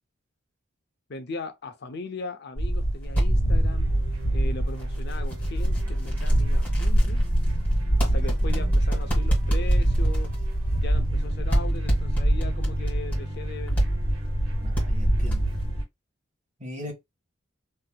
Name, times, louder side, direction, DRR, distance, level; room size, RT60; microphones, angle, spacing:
voice 1, 1.1-3.9 4.3-7.3 8.0-10.3 10.7-13.9 16.8-16.9, left 3 dB, 55° left, 0.6 m, -39 dB
sound 1, 2.6-15.8, right 1 dB, 30° left, 2.1 m, -24 dB
sound 2, 3.0-3.3 3.9-4.1 4.7-11.2 11.5-13.2 13.7-13.9 14.3-14.4 14.7-14.9 15.2-15.6, right 1 dB, 10° left, 1.7 m, -30 dB
sound 3, 3.7-15.8, right 1 dB, 85° right, 1.3 m, -39 dB
voice 2, 8.1-8.8 14.6-15.5 16.6-16.9, equal, 35° right, 1.4 m, -39 dB
3.4 x 2.8 x 2.2 m
head